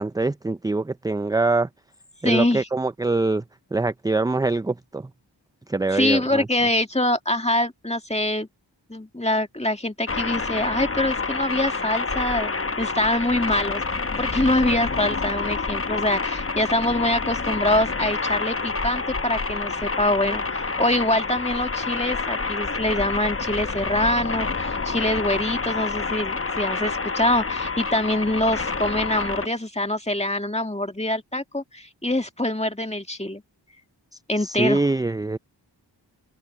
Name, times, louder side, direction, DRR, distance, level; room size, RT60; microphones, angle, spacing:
voice 1, 0.0-1.7 2.2-3.4 3.7-5.1 5.7-6.5 34.4-35.4, right 3 dB, 10° right, 0.3 m, -24 dB
voice 2, 2.2-2.7 5.9-8.5 8.9-12.5 12.8-13.8 14.2-33.4 34.3-34.8, left 1 dB, 15° left, 2.1 m, -24 dB
sound 1, 10.1-29.5, left 4 dB, 30° left, 0.8 m, -28 dB
wide cardioid pair, 55°, 44 cm